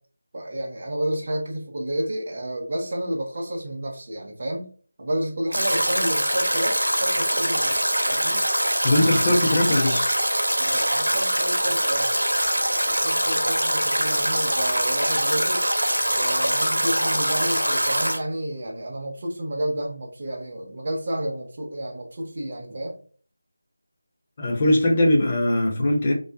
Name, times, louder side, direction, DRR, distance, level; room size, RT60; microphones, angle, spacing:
voice 1, 0.3-4.7 5.0-8.4 10.6-12.1 12.8-15.7 16.1-22.9, right 1 dB, 40° right, 0.5 m, -30 dB
Stream / Drip / Trickle dribble, 5.5-18.2, equal, 90° right, 0.7 m, -23 dB
voice 2, 8.8-10.1 24.4-26.1, left 1 dB, 25° left, 0.6 m, -20 dB
2.5 x 2.4 x 2.2 m
figure-of-eight pair, 165°, 0 cm